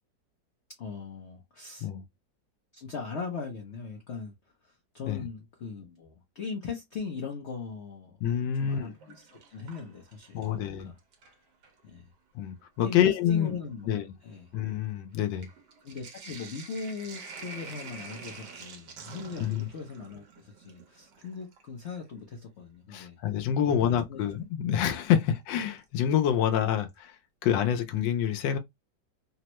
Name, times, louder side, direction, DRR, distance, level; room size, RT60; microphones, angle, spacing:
voice 1, 0.8-1.9 2.7-4.3 4.6-8.2 8.6-9.0 9.3-11.0 11.8-12.1 12.8-13.9 14.2-14.5 15.8-23.2 23.6-24.2, left 5 dB, 60° left, 0.7 m, -39 dB
voice 2, 8.2-8.9 10.3-10.9 12.3-13.6 13.9-14.0 14.5-15.5 19.4-19.7 22.9-27.2 27.4-28.6, left 9 dB, 90° left, 1.3 m, -27 dB
Sink (filling or washing), 8.6-10.6 11.0-11.8 12.6-12.7 13.0-22.1 23.9-24.0 25.8-26.2 26.6-26.7 26.9-27.0, right 4 dB, 70° right, 1.4 m, -48 dB
3.5 x 2.1 x 2.9 m
omnidirectional pair, 2.0 m